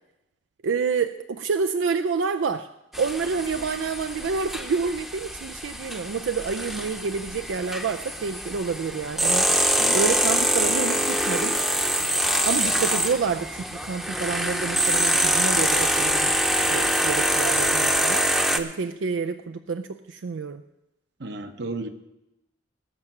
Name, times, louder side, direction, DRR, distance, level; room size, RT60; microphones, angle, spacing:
voice 1, 0.6-2.7 3.0-9.5 9.9-11.6 12.4-18.3 18.5-20.6, right 5 dB, 90° right, 9 dB, 0.4 m, -28 dB
sound 1, 2.9-18.6, right 1 dB, ahead, 0.7 m, -24 dB
voice 2, 21.2-21.9, right 2 dB, 65° right, 8 dB, 1.0 m, -33 dB
19.0 x 6.6 x 6.0 m, 0.92 s
head